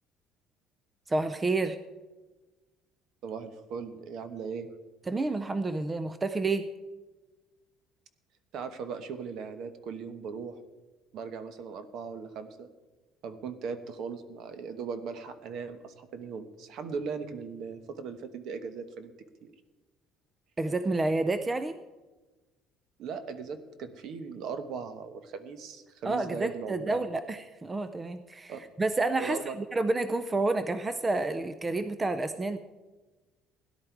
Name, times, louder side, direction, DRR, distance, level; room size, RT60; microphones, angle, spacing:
voice 1, 1.1-1.8 5.1-6.7 20.6-21.8 26.0-32.6, right 2 dB, 15° right, 11 dB, 0.4 m, -29 dB
voice 2, 3.2-4.7 8.5-10.6 11.1-12.7 13.2-19.1 19.4-19.5 23.0-27.0 28.5-28.6 29.2-29.5, right 5 dB, 55° right, 10 dB, 1.1 m, -38 dB
17.0 x 11.0 x 4.6 m, 1.2 s
cardioid pair, 170°, 0 cm